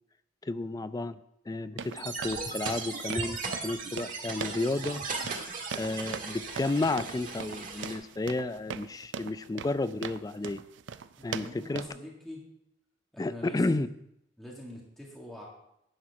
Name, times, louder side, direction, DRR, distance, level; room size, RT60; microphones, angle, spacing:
voice 1, 0.4-1.2 1.5-5.0 5.8-10.6 11.2-11.9 13.2-13.9, left 2 dB, 20° left, 13 dB, 0.3 m, -32 dB
sound 1, 1.8-11.9, right 6 dB, 70° right, 0.4 m, -41 dB
sound 2, 1.9-8.0, right 4 dB, 45° right, 1.6 m, -37 dB
voice 2, 11.2-12.4 13.1-13.9 14.4-15.5, left 1 dB, ahead, -4 dB, 2.0 m, -44 dB
11.0 x 4.7 x 5.9 m, 0.78 s
head